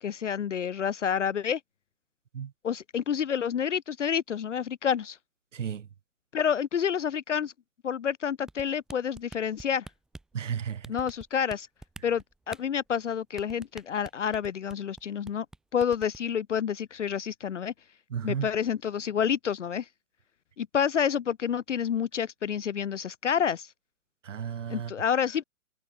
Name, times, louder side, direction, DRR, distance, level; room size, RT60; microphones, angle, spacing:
voice 1, 0.0-1.6 2.6-5.2 6.3-7.5 7.8-9.9 10.9-11.7 12.0-15.5 15.7-17.7 18.2-19.9 20.6-23.7 24.7-25.4, left 8 dB, 50° left, 0.9 m, -29 dB
voice 2, 5.5-5.9 10.3-10.9 18.1-18.5 24.2-24.9, right 8 dB, 50° right, 1.9 m, -33 dB
sound 1, 8.5-10.3 10.8-11.6 11.8-12.6 13.4-15.0 15.3-15.6 15.8-16.2, right 2 dB, ahead, 0.7 m, -44 dB
figure-of-eight pair, 125°, 46 cm